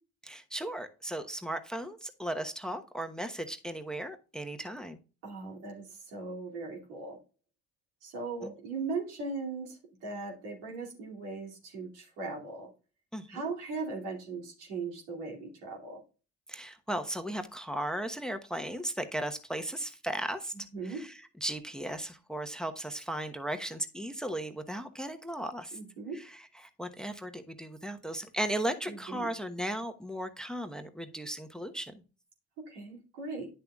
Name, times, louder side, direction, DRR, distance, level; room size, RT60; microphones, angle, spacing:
voice 1, 0.2-5.0 8.4-8.5 13.1-13.5 16.5-25.8 26.1-32.0, right 1 dB, ahead, 8 dB, 1.0 m, -36 dB
voice 2, 5.2-7.2 8.0-12.7 13.3-16.0 20.7-21.0 25.7-26.2 28.9-29.3 32.7-33.5, right 4 dB, 80° right, -1 dB, 2.7 m, -39 dB
10.0 x 6.9 x 2.4 m, 0.34 s
hypercardioid pair, 45°, 36 cm